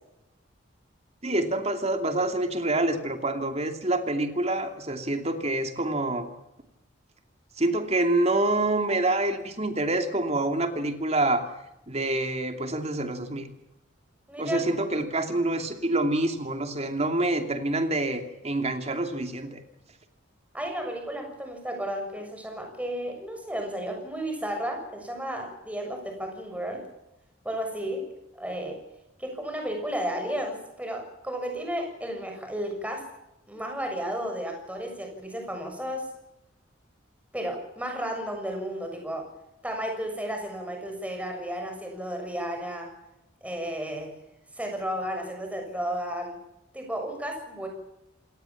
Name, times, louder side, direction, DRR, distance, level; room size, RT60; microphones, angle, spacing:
voice 1, 1.2-6.3 7.6-11.4 11.9-13.5 14.4-19.6, right 2 dB, 35° right, 6 dB, 2.7 m, -27 dB
voice 2, 14.3-14.6 20.5-26.9 27.4-28.1 28.3-28.8 29.2-33.1 33.5-36.1 37.3-39.3 39.6-42.9 43.4-44.1 44.6-46.4 46.7-47.7, equal, 5° right, 3 dB, 6.8 m, -33 dB
28.0 x 18.5 x 7.3 m, 0.88 s
head